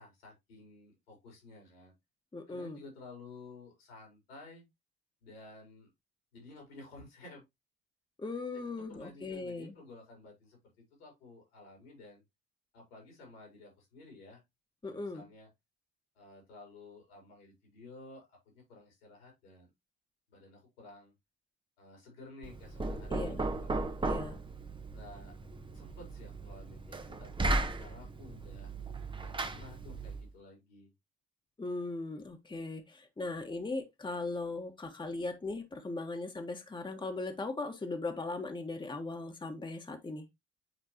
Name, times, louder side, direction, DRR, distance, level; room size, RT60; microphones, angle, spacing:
voice 1, 0.0-1.9 2.5-4.6 5.2-5.9 6.3-7.5 8.8-12.2 12.7-14.4 14.8-15.5 16.1-19.7 20.3-21.1 21.8-23.7 24.2-24.3 24.9-25.3 25.7-28.7 29.2-30.9, left 2 dB, 80° left, 4.0 m, -53 dB
voice 2, 2.3-2.8 8.2-9.7 14.8-15.2 23.1-23.4 24.0-24.4 31.6-40.2, left 3 dB, 15° left, 1.4 m, -38 dB
Knock, 22.4-30.3, right 2 dB, 15° right, 0.9 m, -36 dB
9.1 x 4.4 x 2.9 m
figure-of-eight pair, 50°, 30 cm